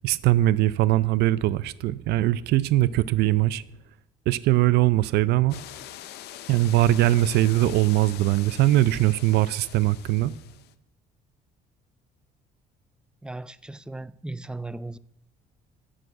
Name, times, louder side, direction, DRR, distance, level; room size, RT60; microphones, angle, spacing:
voice 1, 0.0-3.6 4.3-5.6 6.5-10.3, right 15 dB, 75° right, 0.5 m, -21 dB
sound 1, 5.5-10.7, left 12 dB, 75° left, 0.6 m, -43 dB
voice 2, 13.2-15.0, right 2 dB, 5° right, 0.3 m, -37 dB
8.5 x 6.3 x 7.9 m
cardioid pair, 110°, 17 cm